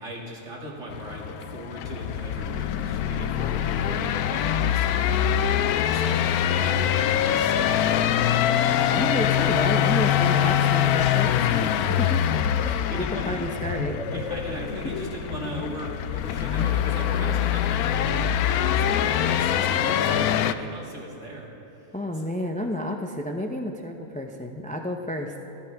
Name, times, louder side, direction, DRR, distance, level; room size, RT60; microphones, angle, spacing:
voice 1, 0.0-8.2 12.6-13.4 14.1-21.5 21.8-22.3, right 1 dB, 50° right, -3 dB, 2.7 m, -38 dB
sound 1, 0.9-20.5, left 10 dB, 75° left, 1.0 m, -24 dB
sound 2, 1.9-11.2, right 1 dB, 70° right, 3.1 m, -41 dB
voice 2, 8.9-12.3 12.7-14.2 21.9-25.4, equal, 10° left, 3 dB, 0.3 m, -31 dB
sound 3, 11.3-15.9, left 4 dB, 55° left, 1.2 m, -35 dB
23.5 x 14.5 x 3.5 m, 2.8 s
omnidirectional pair, 1.6 m